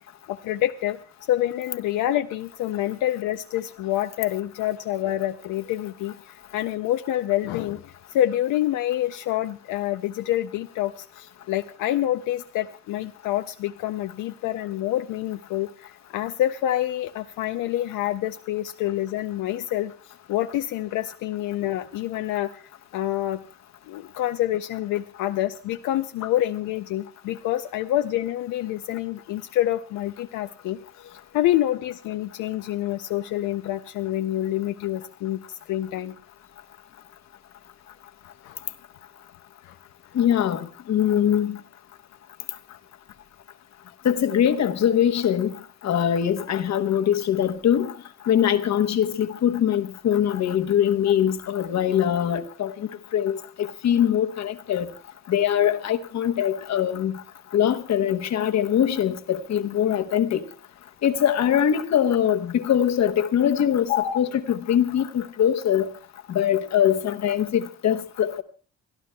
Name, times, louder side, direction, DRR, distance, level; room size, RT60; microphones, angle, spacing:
voice 1, 0.3-1.0 1.3-19.9 20.3-22.6 22.9-23.4 23.9-36.2 38.4-38.6 39.6-39.8 63.9-64.3, left 13 dB, 90° left, 0.6 m, -27 dB
voice 2, 40.1-41.6 44.0-45.6 45.8-47.9 48.3-54.9 55.3-57.2 57.5-60.4 61.0-65.9 66.3-68.4, left 9 dB, 65° left, 1.1 m, -22 dB
30.0 x 12.0 x 2.3 m
cardioid pair, 90°, 30 cm